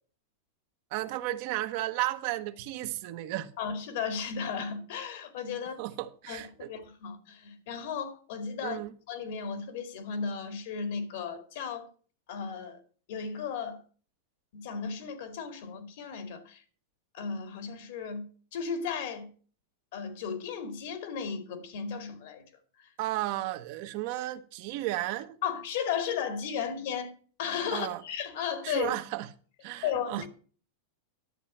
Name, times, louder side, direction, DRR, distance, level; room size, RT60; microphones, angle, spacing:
voice 1, 0.9-3.5 5.8-6.7 8.6-8.9 23.0-25.4 27.7-28.0 28.6-29.3 29.6-30.3, right 16 dB, 55° right, 1.1 m, -33 dB
voice 2, 3.6-5.8 6.3-8.8 9.1-11.9 12.3-12.8 13.1-13.8 14.5-16.6 17.1-18.2 18.5-19.3 19.9-22.4 25.4-27.1 27.4-28.9 29.8-30.3, left 6 dB, 65° left, 2.3 m, -35 dB
11.0 x 7.4 x 5.6 m
supercardioid pair, 135°, 0 cm